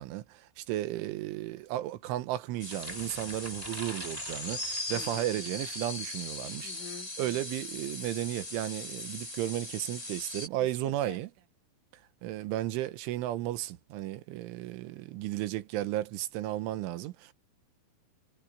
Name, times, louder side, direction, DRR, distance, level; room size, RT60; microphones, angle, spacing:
voice 1, 0.0-6.7 7.2-11.3 12.2-17.3, right 14 dB, 85° right, 3.6 m, -34 dB
sound 1, 2.6-10.5, left 2 dB, 15° left, 4.8 m, -39 dB
sound 2, 2.6-6.0 6.4-6.6, right 1 dB, 5° right, 2.1 m, -46 dB
voice 2, 4.9-5.3 6.6-7.1 10.6-11.2, left 7 dB, 75° left, 5.1 m, -46 dB
omnidirectional pair, 5.5 m